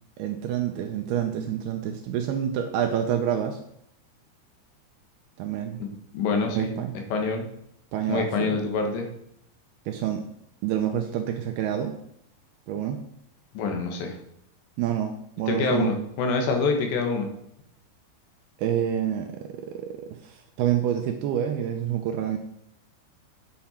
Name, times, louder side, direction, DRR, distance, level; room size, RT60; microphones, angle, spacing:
voice 1, 0.2-3.6 5.4-5.8 6.5-7.0 7.9-8.6 9.9-10.2 10.6-11.9 12.7-13.0 14.8-15.9 18.6-22.4, right 9 dB, 80° right, 5 dB, 2.4 m, -28 dB
voice 2, 6.1-7.5 8.1-9.1 13.6-14.1 15.5-17.3, left 4 dB, 75° left, 3 dB, 3.5 m, -26 dB
9.4 x 7.9 x 4.3 m, 0.73 s
omnidirectional pair, 5.2 m